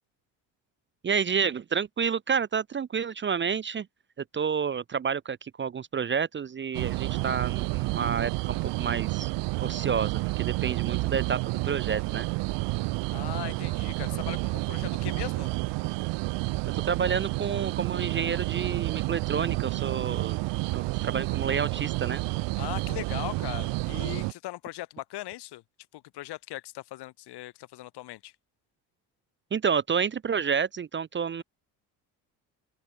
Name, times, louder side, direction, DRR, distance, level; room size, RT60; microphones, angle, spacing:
voice 1, 1.0-3.9 4.3-9.3 9.6-11.4 11.6-12.3 16.9-20.4 20.7-22.2 29.5-31.4, right 6 dB, 25° right, 0.6 m, -29 dB
sound 1, 6.7-24.3, right 23 dB, 70° right, 0.7 m, -30 dB
voice 2, 13.1-15.5 22.6-25.6 25.9-28.3, left 16 dB, 60° left, 1.3 m, -39 dB
supercardioid pair, 80°, 44 cm